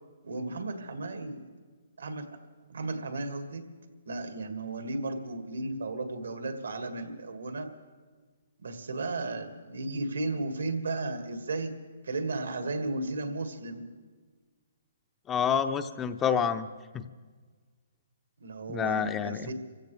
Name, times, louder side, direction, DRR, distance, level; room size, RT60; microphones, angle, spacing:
voice 1, 0.2-1.4 2.0-2.3 2.7-3.6 4.1-7.7 8.6-11.7 12.0-13.8 18.4-19.5, right 2 dB, 90° right, 6 dB, 1.9 m, -34 dB
voice 2, 15.3-16.7 16.9-17.0 18.7-19.5, left 7 dB, 15° left, 10 dB, 0.6 m, -28 dB
25.0 x 16.0 x 3.3 m, 1.5 s
hypercardioid pair, 150°, 0 cm